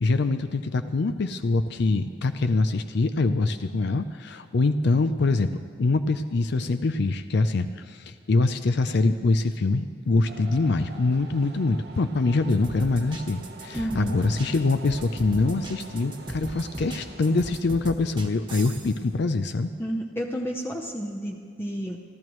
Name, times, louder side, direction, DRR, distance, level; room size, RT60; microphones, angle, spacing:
voice 1, 0.0-19.7, left 3 dB, 65° left, 9 dB, 0.5 m, -24 dB
sound 1, 10.3-17.6, right 3 dB, 65° right, 1.0 m, -45 dB
sound 2, 12.5-19.0, right 1 dB, 25° right, 1.3 m, -38 dB
voice 2, 13.8-14.2 19.8-22.0, equal, 15° left, 1 dB, 0.7 m, -31 dB
28.0 x 12.5 x 3.1 m, 2.2 s
head